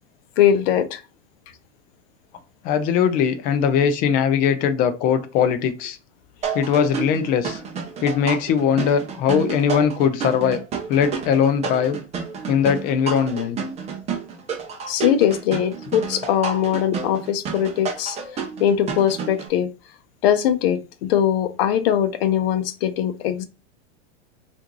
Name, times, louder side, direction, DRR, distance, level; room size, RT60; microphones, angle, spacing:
voice 1, 0.4-1.0 14.9-18.2 18.6-19.7 20.2-23.4, left 10 dB, 55° left, 0.7 m, -21 dB
voice 2, 2.6-6.0 6.5-7.6 8.0-10.6 10.9-12.0 12.5-13.6, left 7 dB, 25° left, 0.4 m, -20 dB
sound 1, 6.4-19.5, right 5 dB, 20° right, 0.6 m, -30 dB
3.4 x 2.6 x 3.0 m
hypercardioid pair, 130°, 35 cm